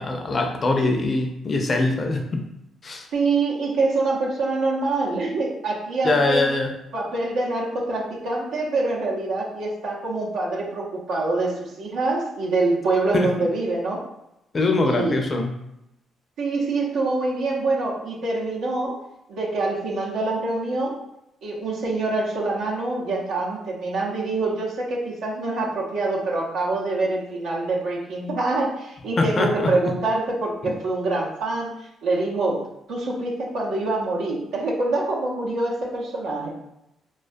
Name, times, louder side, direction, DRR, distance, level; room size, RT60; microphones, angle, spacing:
voice 1, 0.0-2.4 2.8-3.1 6.0-6.8 13.1-13.5 14.5-15.5 29.2-29.7 30.6-30.7, left 2 dB, 40° left, 3 dB, 0.4 m, -23 dB
voice 2, 3.1-6.4 6.9-14.1 14.9-15.2 16.4-19.0 19.3-21.0 21.4-31.7 32.0-36.6, right 2 dB, 85° right, -6 dB, 0.6 m, -25 dB
2.2 x 2.2 x 2.5 m, 0.84 s
cardioid pair, 90°, 0 cm